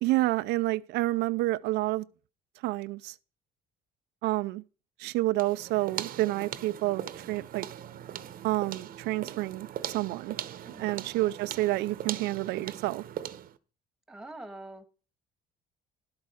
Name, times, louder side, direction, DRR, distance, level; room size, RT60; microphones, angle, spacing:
voice 1, 0.0-2.0 2.6-3.2 4.2-4.6 5.0-7.7 8.4-10.4 10.8-13.0, right 18 dB, 85° right, 0.4 m, -29 dB
sound 1, 5.4-13.6, right 11 dB, 60° right, 0.8 m, -40 dB
voice 2, 10.6-11.0 14.1-14.8, right 2 dB, ahead, 1.5 m, -44 dB
11.5 x 8.4 x 4.9 m
cardioid pair, 110°, 17 cm